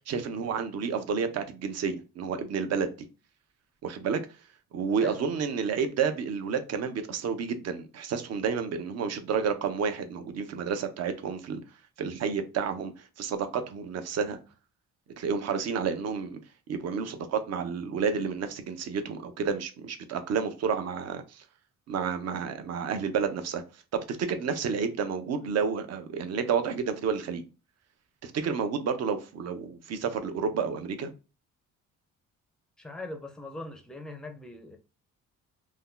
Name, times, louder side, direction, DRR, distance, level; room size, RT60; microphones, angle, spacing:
voice 1, 0.1-2.9 3.8-4.2 4.7-11.6 12.0-12.9 13.2-14.4 15.2-16.4 16.7-21.4 21.9-23.6 23.9-27.4 28.2-31.1, right 6 dB, 55° right, 0.5 m, -30 dB
voice 2, 32.8-34.8, left 2 dB, ahead, 0.4 m, -40 dB
2.6 x 2.2 x 3.7 m
cardioid pair, 140°, 32 cm